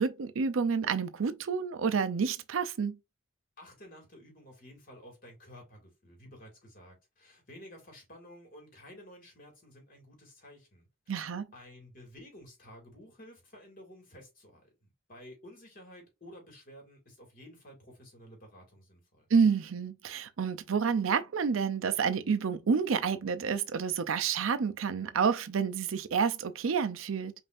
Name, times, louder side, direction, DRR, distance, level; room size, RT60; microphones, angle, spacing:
voice 1, 0.0-3.0 11.1-11.5 19.3-27.3, right 6 dB, 90° right, 0.5 m, -29 dB
voice 2, 3.6-19.3, equal, 45° left, 2.0 m, -52 dB
5.3 x 2.6 x 2.5 m
head